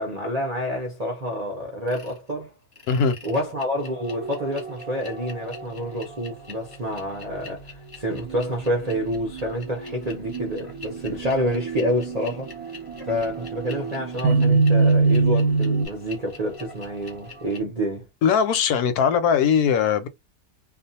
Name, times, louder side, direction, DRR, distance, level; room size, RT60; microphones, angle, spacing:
voice 1, 0.0-2.5 3.2-12.5 13.0-18.1, equal, 40° right, 0.5 m, -28 dB
sound 1, 1.9-2.2 2.7-17.6, equal, 20° left, 0.7 m, -42 dB
sound 2, 8.2-15.9, right 4 dB, 85° right, 1.1 m, -24 dB
voice 2, 18.2-20.1, left 7 dB, 85° left, 1.1 m, -20 dB
2.5 x 2.3 x 2.7 m
omnidirectional pair, 1.6 m